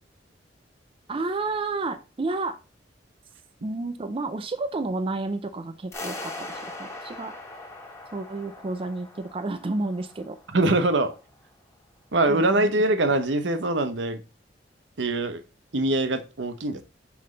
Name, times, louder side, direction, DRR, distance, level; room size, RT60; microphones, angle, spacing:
voice 1, 1.1-2.6 3.6-7.3 8.1-10.4 12.3-12.7, right 3 dB, 30° right, 0.4 m, -31 dB
sound 1, 5.9-10.9, left 2 dB, 15° left, 1.2 m, -40 dB
voice 2, 10.5-11.1 12.1-14.2 15.0-15.4 15.7-16.8, right 2 dB, 80° right, 0.8 m, -23 dB
5.8 x 5.1 x 3.2 m
head